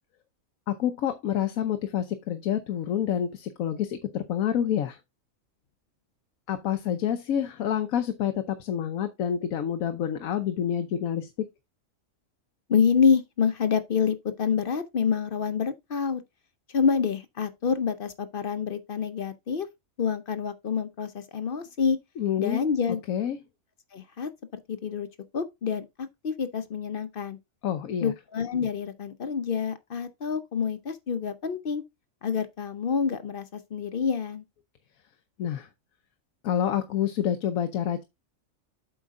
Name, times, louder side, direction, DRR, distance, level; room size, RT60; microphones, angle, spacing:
voice 1, 0.7-5.0 6.5-11.5 22.2-22.6 23.1-23.4 27.6-28.1 35.4-35.7 36.4-38.0, left 9 dB, 85° left, 1.2 m, -28 dB
voice 2, 12.7-16.2 16.7-19.7 20.0-22.0 22.4-23.0 23.9-24.3 24.7-25.1 25.3-27.4 28.0-31.8 32.2-34.4, left 6 dB, 50° left, 0.7 m, -27 dB
7.9 x 5.0 x 3.6 m
omnidirectional pair, 1.4 m